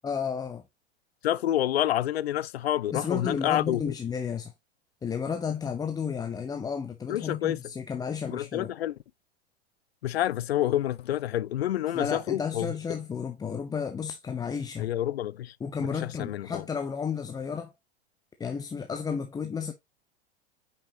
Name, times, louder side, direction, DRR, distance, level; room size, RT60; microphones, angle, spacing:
voice 1, 0.0-0.6 2.9-4.5 5.0-8.7 11.9-14.9 15.6-17.7 18.4-19.7, left 6 dB, 10° left, 0.6 m, -32 dB
voice 2, 1.2-3.9 7.1-7.6 8.3-8.9 10.0-12.7 14.8-15.5 16.0-16.6, left 12 dB, 70° left, 0.5 m, -28 dB
8.3 x 5.4 x 2.7 m
figure-of-eight pair, 90°, 32 cm